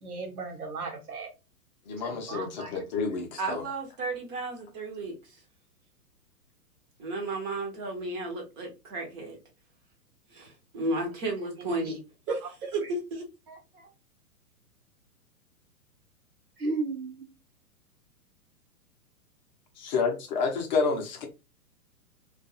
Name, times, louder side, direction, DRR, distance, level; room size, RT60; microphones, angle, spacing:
voice 1, 0.0-1.3 2.0-2.7 11.6-11.9 16.6-17.3, right 3 dB, 70° right, 0.9 m, -35 dB
voice 2, 1.9-3.6 19.8-21.3, left 4 dB, 30° left, 0.6 m, -29 dB
voice 3, 3.4-5.4 7.0-9.4 10.3-12.0 12.3-12.4 12.7-13.9, right 2 dB, 20° right, 0.6 m, -33 dB
2.5 x 2.3 x 2.5 m
figure-of-eight pair, 110°, 45 cm